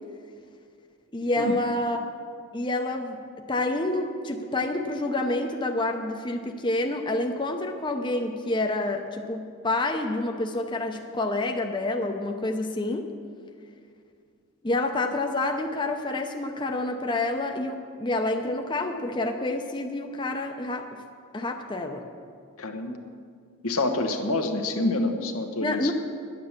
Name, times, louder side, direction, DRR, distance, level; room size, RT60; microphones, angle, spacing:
voice 1, 1.1-2.1 2.5-3.2 3.5-13.1 14.6-21.0 21.3-22.0 25.6-25.9, left 2 dB, 20° left, 4 dB, 0.7 m, -28 dB
voice 2, 22.6-23.0 23.6-25.9, left 2 dB, 90° left, 4 dB, 1.2 m, -27 dB
11.0 x 9.7 x 7.3 m, 2.2 s
head